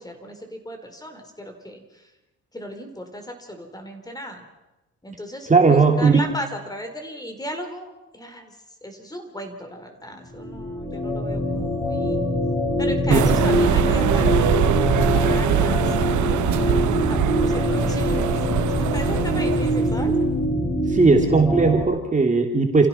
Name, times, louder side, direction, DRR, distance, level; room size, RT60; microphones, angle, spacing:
voice 1, 0.0-2.1 2.5-4.4 5.0-12.3 12.8-14.3 15.2-16.3 16.8-20.2, equal, 10° left, 5 dB, 4.4 m, -36 dB
voice 2, 5.5-6.2 13.1-13.3 20.9-22.9, right 4 dB, 25° right, 3 dB, 2.9 m, -17 dB
sound 1, 10.3-21.8, left 1 dB, 30° left, 7.3 m, -23 dB
sound 2, 13.1-20.1, right 11 dB, 75° right, 1.1 m, -23 dB
28.5 x 15.5 x 5.9 m, 0.98 s
cardioid pair, 90°, 30 cm